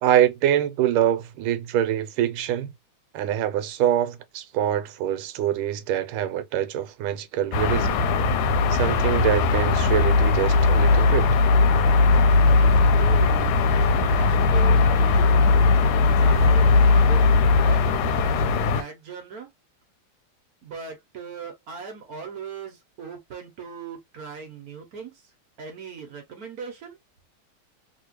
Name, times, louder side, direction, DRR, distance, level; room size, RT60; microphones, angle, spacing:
voice 1, 0.0-2.7 3.1-8.0 8.7-11.3, right 11 dB, 80° right, 1.4 m, -24 dB
sound 1, 7.5-18.8, left 3 dB, 90° left, 1.6 m, -19 dB
voice 2, 13.0-13.6 13.9-15.7 16.2-17.3 17.6-19.5 20.6-25.3 25.6-27.0, right 6 dB, 60° right, 1.0 m, -39 dB
3.3 x 2.8 x 2.9 m
omnidirectional pair, 2.4 m